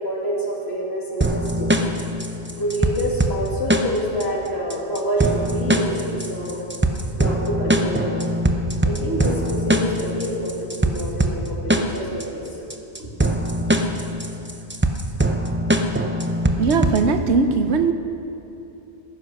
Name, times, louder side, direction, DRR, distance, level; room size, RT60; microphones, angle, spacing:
voice 1, 0.0-1.7 2.6-6.6 7.2-8.2 8.8-12.4 13.0-13.1, equal, 70° left, -4 dB, 2.9 m, -27 dB
sound 1, 1.2-17.2, right 1 dB, 15° right, 0.6 m, -22 dB
voice 2, 16.6-17.9, right 4 dB, 80° right, 9 dB, 1.1 m, -19 dB
15.5 x 9.8 x 6.3 m, 2.9 s
omnidirectional pair, 1.1 m